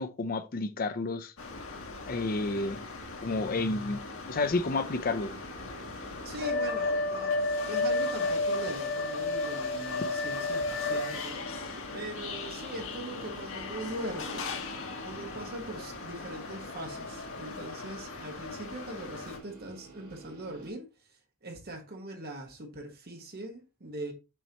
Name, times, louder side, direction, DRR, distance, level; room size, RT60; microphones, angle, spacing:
voice 1, 0.0-1.3 2.1-2.8 3.2-5.3, left 3 dB, 40° left, 0.5 m, -30 dB
sound 1, 1.4-19.4, left 3 dB, 65° left, 1.3 m, -35 dB
sound 2, 4.9-20.7, right 3 dB, 90° right, 2.8 m, -52 dB
voice 2, 6.2-11.4 11.9-14.5 15.0-20.9 21.4-24.1, right 1 dB, 45° right, 1.4 m, -41 dB
7.0 x 4.5 x 2.9 m
head